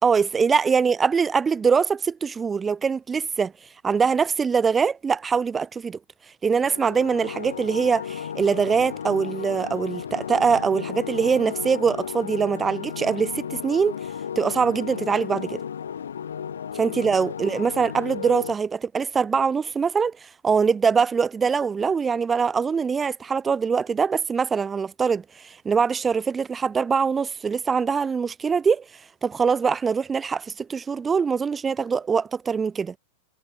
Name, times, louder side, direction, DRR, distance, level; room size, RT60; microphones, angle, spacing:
voice 1, 0.0-3.5 3.8-6.0 6.4-14.0 14.4-15.6 16.7-28.8 29.2-32.9, right 6 dB, 15° right, 3.9 m, -23 dB
sound 1, 6.6-18.5, left 8 dB, 65° left, 7.3 m, -34 dB
figure-of-eight pair, 90°, 0 cm